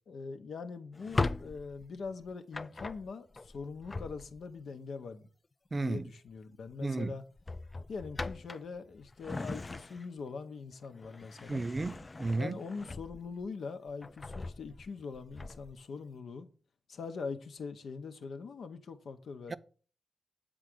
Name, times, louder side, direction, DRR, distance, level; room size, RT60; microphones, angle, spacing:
voice 1, 0.1-5.3 5.8-7.2 7.9-11.6 12.4-16.5 16.9-19.6, left 4 dB, 80° left, 0.8 m, -42 dB
Drawer open or close, 0.9-4.6 6.1-6.4 6.7-6.9 7.4-10.3 10.7-13.5 13.9-15.8, left 3 dB, 35° left, 0.3 m, -39 dB
voice 2, 5.7-6.1 6.8-7.1 11.5-12.6 19.5-19.6, right 3 dB, 35° right, 0.4 m, -33 dB
8.0 x 3.8 x 6.1 m
cardioid pair, 70°, 0 cm